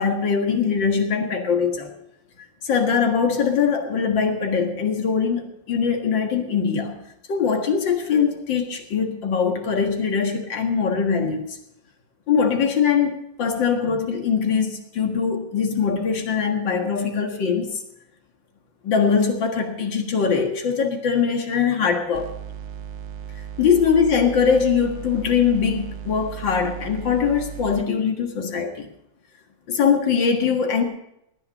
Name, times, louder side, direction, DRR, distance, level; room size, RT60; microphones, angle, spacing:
voice 1, 0.0-1.9 2.6-7.0 7.3-11.6 12.3-17.8 18.8-22.3 23.6-28.9 29.7-30.8, left 6 dB, 90° left, 4 dB, 2.5 m, -22 dB
sound 1, 22.1-27.9, right 8 dB, 65° right, 1.3 m, -36 dB
17.5 x 10.5 x 5.4 m, 0.80 s
omnidirectional pair, 2.0 m